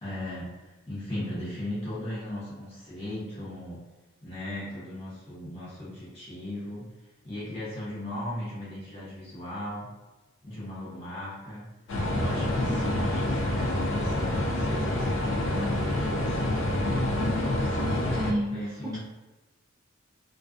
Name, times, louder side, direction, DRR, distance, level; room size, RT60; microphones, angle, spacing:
voice 1, 0.0-3.8 4.2-6.9 7.2-9.9 10.4-11.7 12.1-17.6 18.3-19.0, left 1 dB, 30° left, -9 dB, 0.8 m, -37 dB
sound 1, 11.9-18.3, left 1 dB, 75° left, 0.4 m, -27 dB
voice 2, 12.6-13.1 17.2-19.0, equal, 20° right, -8 dB, 0.3 m, -33 dB
2.4 x 2.3 x 2.3 m, 1.1 s
head